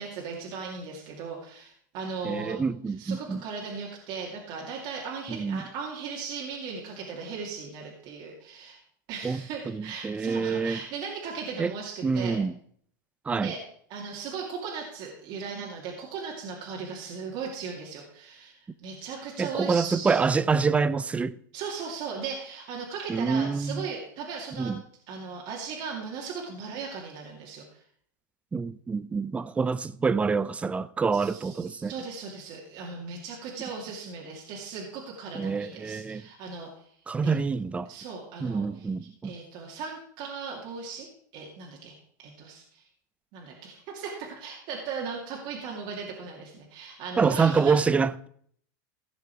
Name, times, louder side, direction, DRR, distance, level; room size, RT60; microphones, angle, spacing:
voice 1, 0.0-2.6 3.0-8.8 9.1-12.4 13.3-13.6 13.9-18.5 18.8-20.2 21.5-24.7 25.1-27.6 31.1-36.9 37.2-37.3 37.9-38.6 39.2-41.1 41.3-42.8 43.3-47.7, right 5 dB, 50° right, 2.5 m, -37 dB
voice 2, 2.2-3.4 5.3-5.6 9.2-10.8 11.6-11.7 12.0-12.5 13.3-13.5 19.4-21.4 23.1-23.9 24.6-24.8 28.5-31.9 35.3-36.2 37.1-37.9 38.4-39.3 47.2-48.3, right 5 dB, 10° right, 0.4 m, -26 dB
16.0 x 6.0 x 4.8 m
supercardioid pair, 130°, 10 cm